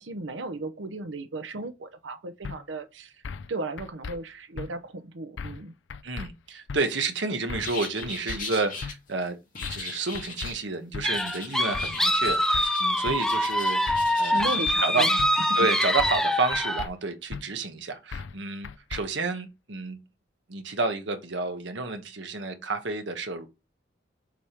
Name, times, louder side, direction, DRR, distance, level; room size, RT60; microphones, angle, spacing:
voice 1, 0.0-3.1 3.5-5.7 14.2-15.2 15.5-15.6, right 2 dB, 90° right, 0.8 m, -35 dB
sound 1, 2.4-2.6 3.2-3.5 3.8-4.2 4.6-4.7 5.4-5.6 5.9-6.3 6.7-6.8 7.5-8.4 8.8-8.9 9.6-9.9 10.1-10.5 10.9-11.1 11.7-12.0 12.3-12.7 13.1-13.2 13.9-14.1 14.4-14.8 15.2-15.3 16.0-16.3 16.5-16.9 17.3-17.4 18.1-18.4 18.6-19.0, left 5 dB, 75° left, 0.5 m, -37 dB
voice 2, 6.0-9.4 9.7-14.5 14.8-15.1 15.5-20.0 20.5-23.5, right 3 dB, 70° right, 1.2 m, -30 dB
sound 2, 7.6-8.9 9.5-10.6 11.1-12.9 13.2-14.6, left 4 dB, 50° left, 1.7 m, -39 dB
sound 3, 11.0-16.9, left 1 dB, 5° left, 0.6 m, -24 dB
7.4 x 3.6 x 4.4 m
head